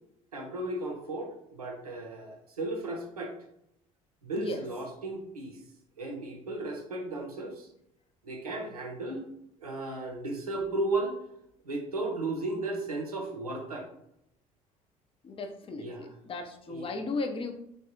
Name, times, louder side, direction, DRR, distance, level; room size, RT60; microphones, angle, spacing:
voice 1, 0.3-3.3 4.2-5.6 6.0-7.7 8.2-9.3 9.6-11.2 11.6-13.9 15.8-16.2 16.7-16.9, right 2 dB, 90° right, 2 dB, 0.5 m, -35 dB
voice 2, 15.2-17.5, left 3 dB, 30° left, 5 dB, 0.5 m, -35 dB
3.3 x 2.1 x 2.7 m, 0.79 s
figure-of-eight pair, 60°, 19 cm